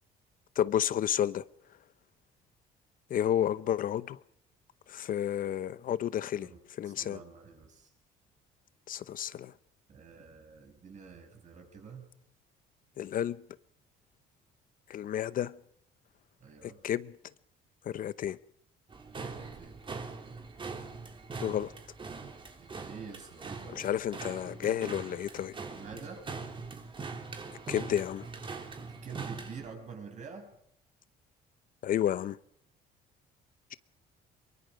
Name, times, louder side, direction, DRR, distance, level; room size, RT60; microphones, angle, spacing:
voice 1, 0.6-1.4 3.1-4.2 4.9-7.2 8.9-9.5 13.0-13.4 14.9-15.6 16.6-17.1 17.8-18.4 21.4-21.7 23.7-25.6 27.7-28.3 31.8-32.4, left 10 dB, 55° left, 0.8 m, -31 dB
voice 2, 6.8-7.9 9.9-12.1 16.4-16.8 19.3-19.8 22.6-23.8 25.7-26.4 28.8-30.5, right 5 dB, 45° right, 6.2 m, -47 dB
sound 1, 18.9-29.7, right 4 dB, 30° right, 3.3 m, -42 dB
23.5 x 22.5 x 4.9 m
cardioid pair, 110°, 17 cm